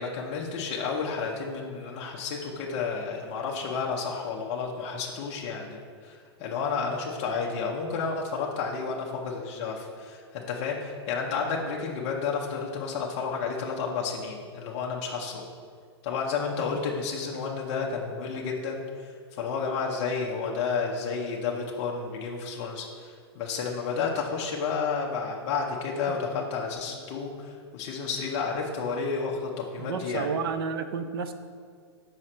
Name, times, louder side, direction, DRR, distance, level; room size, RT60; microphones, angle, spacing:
voice 1, 0.0-15.4 16.0-30.3, left 5 dB, 30° left, -2 dB, 0.6 m, -31 dB
voice 2, 29.8-31.3, right 5 dB, 55° right, 9 dB, 0.5 m, -31 dB
6.2 x 5.0 x 4.3 m, 2.1 s
supercardioid pair, 170°, 15 cm